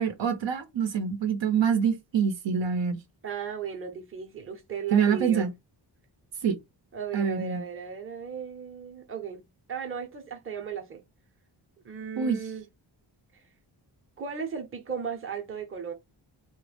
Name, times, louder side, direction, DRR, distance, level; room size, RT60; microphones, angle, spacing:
voice 1, 0.0-3.0 4.9-5.5 6.4-6.6 7.1-7.6 12.2-12.4, right 7 dB, 70° right, 0.7 m, -25 dB
voice 2, 3.2-5.5 6.9-9.4 9.7-11.0 11.8-12.7 14.2-15.9, right 6 dB, 30° right, 0.7 m, -36 dB
3.0 x 2.2 x 3.2 m
wide cardioid pair, 135°, 46 cm